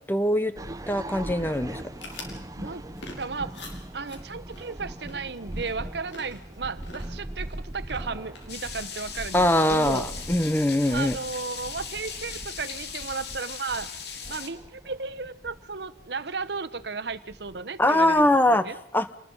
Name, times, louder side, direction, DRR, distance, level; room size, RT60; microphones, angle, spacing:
voice 1, 0.1-0.5 0.9-1.8 9.3-11.2 17.8-18.6 18.9-19.1, left 1 dB, 10° left, 13 dB, 0.7 m, -22 dB
sound 1, 0.6-18.5, right 1 dB, 20° right, 0.8 m, -41 dB
sound 2, 1.9-9.6, left 2 dB, 90° left, 5.2 m, -48 dB
voice 2, 3.2-3.5 3.9-10.1 10.9-13.9 14.3-18.8, right 4 dB, 65° right, 12 dB, 1.0 m, -34 dB
sound 3, 8.5-14.5, left 6 dB, 60° left, 2.4 m, -38 dB
27.0 x 20.0 x 5.5 m, 0.77 s
head